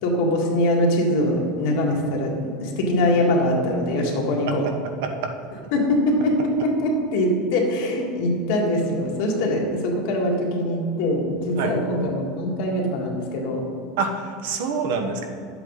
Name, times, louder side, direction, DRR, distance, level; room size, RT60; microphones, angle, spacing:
voice 1, 0.0-4.7 5.7-13.7, left 1 dB, 55° left, 0 dB, 1.9 m, -23 dB
voice 2, 5.0-5.3 11.6-11.8 14.0-15.2, right 5 dB, 60° right, 5 dB, 1.1 m, -26 dB
11.0 x 7.9 x 4.0 m, 2.5 s
supercardioid pair, 180°, 0 cm